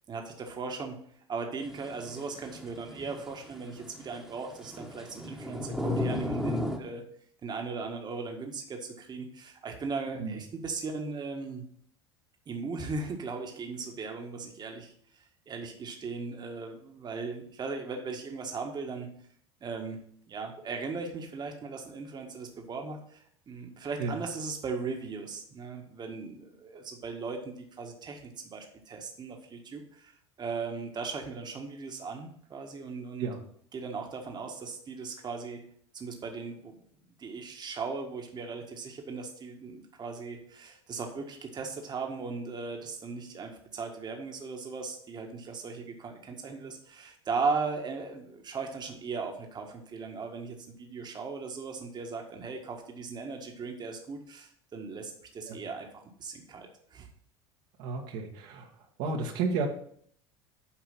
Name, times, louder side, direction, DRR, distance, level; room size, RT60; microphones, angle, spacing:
voice 1, 0.1-1.0 1.3-7.0 7.4-11.6 12.5-19.1 19.6-33.3 33.7-35.6 35.9-36.8 37.2-55.9 56.2-57.1, right 4 dB, 30° right, 3 dB, 1.7 m, -38 dB
sound 1, 1.6-6.8, left 1 dB, ahead, 1.6 m, -35 dB
voice 2, 57.8-58.7 59.0-59.7, right 4 dB, 60° right, 1 dB, 1.7 m, -32 dB
9.0 x 5.5 x 5.7 m, 0.63 s
figure-of-eight pair, 75°, 14 cm